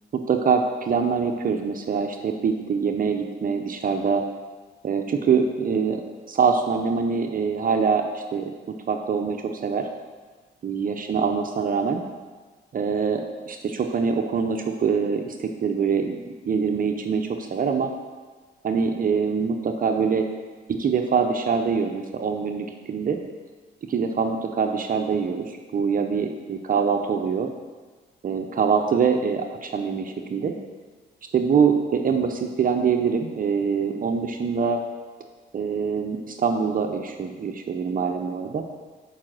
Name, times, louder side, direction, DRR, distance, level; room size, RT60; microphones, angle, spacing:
voice 1, 0.1-4.2 4.8-6.0 6.3-8.5 8.9-9.9 10.6-12.0 12.7-16.2 16.4-17.9 18.6-20.3 20.7-23.2 23.9-27.5 28.2-30.5 31.3-34.8 35.5-38.6, right 6 dB, 45° right, 4 dB, 0.7 m, -24 dB
7.3 x 4.9 x 6.0 m, 1.4 s
cardioid pair, 90°, 20 cm